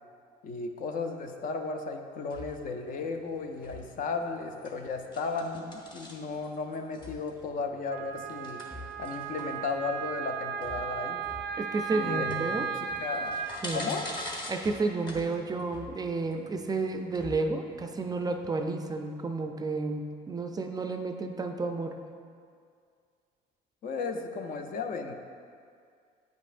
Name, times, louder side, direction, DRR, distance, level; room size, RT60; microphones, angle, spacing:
voice 1, 0.4-8.6 9.0-11.2 11.9-13.3 13.7-14.1 23.8-25.1, left 4 dB, 55° left, 5 dB, 0.6 m, -35 dB
sound 1, 2.3-18.5, left 1 dB, 25° left, 1.0 m, -46 dB
Wind instrument woodwind instrument, 7.9-13.6, right 7 dB, 70° right, 0.5 m, -35 dB
voice 2, 11.6-12.7 13.6-13.9 14.5-21.9, right 3 dB, 25° right, 5 dB, 0.4 m, -31 dB
9.1 x 5.3 x 2.5 m, 2.2 s
cardioid pair, 110°, 17 cm